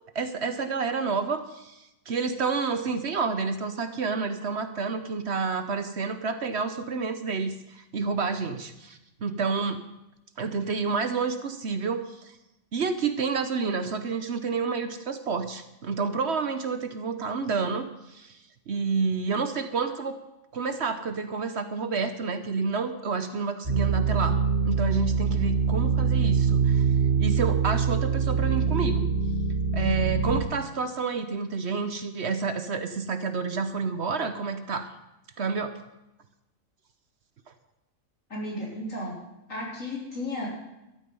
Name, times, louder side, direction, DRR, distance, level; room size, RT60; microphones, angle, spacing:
voice 1, 0.1-9.8 10.4-12.3 12.7-18.4 18.7-20.1 20.5-24.4 24.6-26.8 27.2-29.1 29.7-34.9 35.4-35.8, right 5 dB, 55° right, 9 dB, 1.1 m, -29 dB
sound 1, 23.6-30.4, right 5 dB, 40° right, 3.3 m, -24 dB
voice 2, 38.3-39.2 39.5-40.6, left 1 dB, 70° left, -3 dB, 4.3 m, -34 dB
13.5 x 11.5 x 5.4 m, 0.93 s
omnidirectional pair, 1.4 m